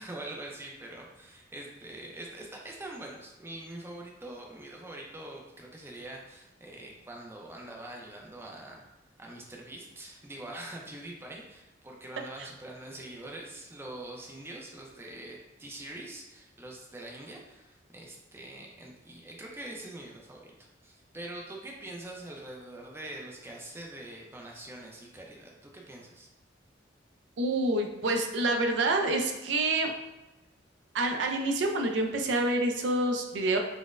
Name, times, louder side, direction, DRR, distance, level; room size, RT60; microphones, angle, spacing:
voice 1, 0.0-8.8 9.2-26.3, right 1 dB, 15° right, -1 dB, 0.4 m, -44 dB
voice 2, 27.4-29.9 30.9-33.6, right 2 dB, 75° right, 3 dB, 0.4 m, -27 dB
4.0 x 2.1 x 2.4 m, 1.1 s
head